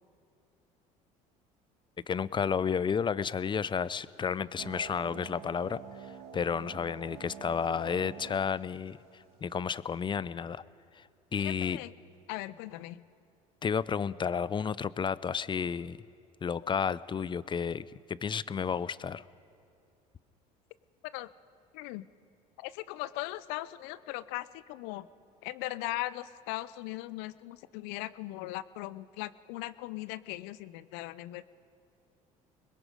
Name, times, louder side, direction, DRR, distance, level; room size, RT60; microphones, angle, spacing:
voice 1, 2.1-5.8 6.3-9.0 9.4-10.6 11.0-11.1 11.3-11.8 13.6-16.0 16.4-19.2, left 6 dB, 25° left, 18 dB, 0.5 m, -31 dB
sound 1, 4.6-9.6, right 7 dB, 65° right, 2.3 m, -47 dB
voice 2, 11.4-11.9 12.3-13.0 21.1-21.3 21.7-22.1 22.6-25.1 25.4-31.4, left 17 dB, 75° left, 17 dB, 0.6 m, -39 dB
25.0 x 21.5 x 5.1 m, 2.4 s
hypercardioid pair, 70°, 18 cm